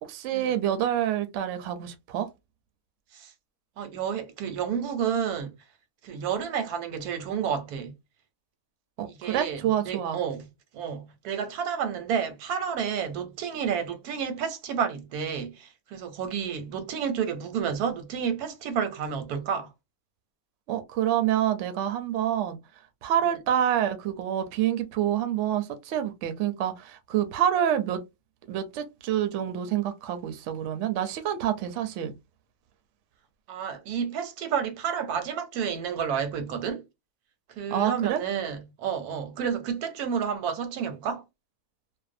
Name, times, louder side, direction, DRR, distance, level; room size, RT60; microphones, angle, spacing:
voice 1, 0.0-2.3 9.0-10.2 20.7-22.6 23.0-28.0 28.5-32.1 37.7-38.2, right 10 dB, 65° right, 0.8 m, -27 dB
voice 2, 3.8-5.5 6.0-7.9 9.1-10.5 10.7-19.7 33.5-36.8 37.5-41.2, right 7 dB, 90° right, 1.1 m, -30 dB
2.6 x 2.1 x 2.4 m
omnidirectional pair, 1.6 m